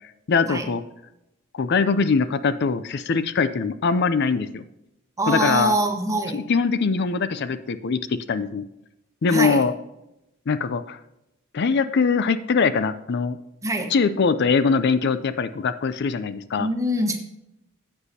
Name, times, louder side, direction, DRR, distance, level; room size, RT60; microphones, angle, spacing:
voice 1, 0.3-0.8 1.5-4.6 5.2-5.7 6.3-8.6 9.2-9.7 10.5-11.0 11.5-13.4 13.9-16.7, left 5 dB, 55° left, 13 dB, 0.5 m, -22 dB
voice 2, 5.2-6.4 9.3-9.6 13.6-13.9 16.6-17.2, right 1 dB, 15° right, 4 dB, 1.2 m, -24 dB
13.0 x 8.2 x 2.8 m, 0.89 s
head